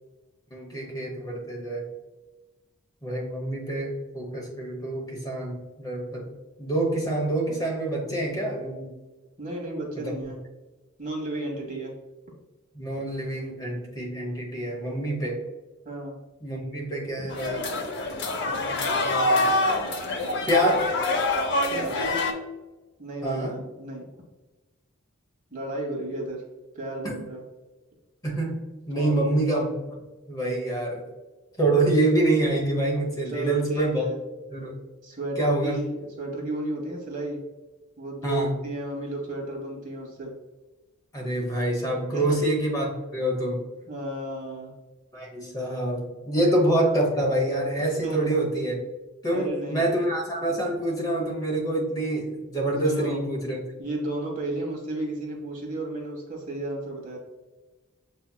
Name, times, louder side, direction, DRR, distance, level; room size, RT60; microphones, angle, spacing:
voice 1, 0.5-1.9 3.0-6.3 6.6-8.9 9.9-10.1 12.7-15.4 16.4-17.7 18.4-19.5 20.5-20.9 23.2-23.6 27.0-27.1 28.2-28.6 28.9-29.7 30.3-31.1 31.6-34.0 34.5-34.7 35.4-35.8 38.2-38.5 41.1-43.7 45.1-48.8 49.2-53.6, right 1 dB, 20° left, -2 dB, 1.0 m, -26 dB
voice 2, 9.4-10.4 11.0-11.9 15.8-16.2 17.2-17.3 21.7-22.2 23.0-24.0 25.5-26.4 26.7-27.4 28.9-29.1 33.3-34.1 35.0-37.4 38.0-40.3 42.1-42.4 43.9-44.7 48.0-48.3 49.3-49.9 52.8-53.2 53.8-57.2, right 2 dB, 40° right, -1 dB, 1.2 m, -33 dB
sound 1, 17.3-22.3, left 2 dB, 55° left, 0.7 m, -25 dB
6.9 x 2.8 x 2.2 m, 1.2 s
head